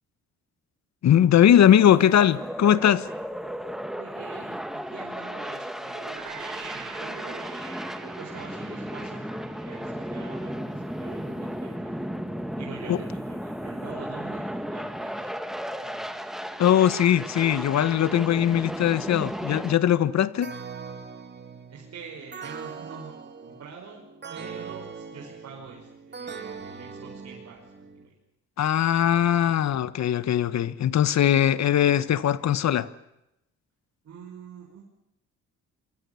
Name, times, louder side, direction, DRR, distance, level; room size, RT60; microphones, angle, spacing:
voice 1, 1.0-3.1 12.9-13.0 16.6-20.5 28.6-32.9, left 10 dB, 65° left, 1.4 m, -20 dB
sound 1, 1.4-19.8, equal, ahead, 2.2 m, -35 dB
voice 2, 1.6-2.1 3.9-7.5 8.0-12.0 12.6-15.3 15.7-16.2 21.7-24.0 24.3-28.2 29.0-29.4 31.5-31.6 34.0-34.9, right 5 dB, 60° right, 5.8 m, -45 dB
sound 2, 5.9-10.8, right 10 dB, 90° right, 2.9 m, -45 dB
sound 3, 20.4-28.1, right 5 dB, 35° right, 2.9 m, -41 dB
27.0 x 24.0 x 7.1 m
cardioid pair, 90°, 30 cm